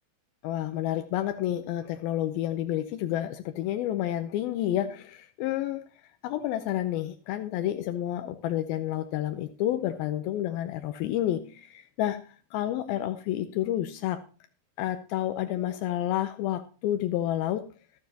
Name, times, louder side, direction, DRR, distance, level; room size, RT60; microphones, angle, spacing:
voice 1, 0.4-5.8 6.2-14.2 14.8-17.7, left 12 dB, 80° left, 8 dB, 2.5 m, -30 dB
13.5 x 12.5 x 2.8 m, 0.36 s
omnidirectional pair, 4.3 m